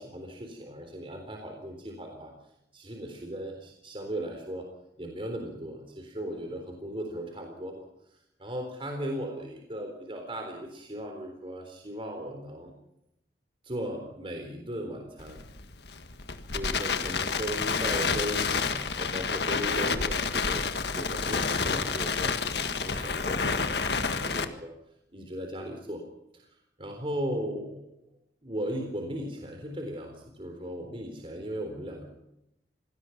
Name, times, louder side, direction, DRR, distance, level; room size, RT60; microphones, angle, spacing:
voice 1, 0.0-2.3 2.7-4.7 5.0-7.8 8.4-12.7 13.6-15.4 16.5-24.7 25.1-26.0 26.3-26.5 26.8-27.8 28.4-32.1, equal, 30° right, 3 dB, 3.9 m, -37 dB
Crackle, 15.2-24.4, left 5 dB, 70° left, 1.7 m, -29 dB
27.0 x 19.5 x 5.9 m, 0.82 s
head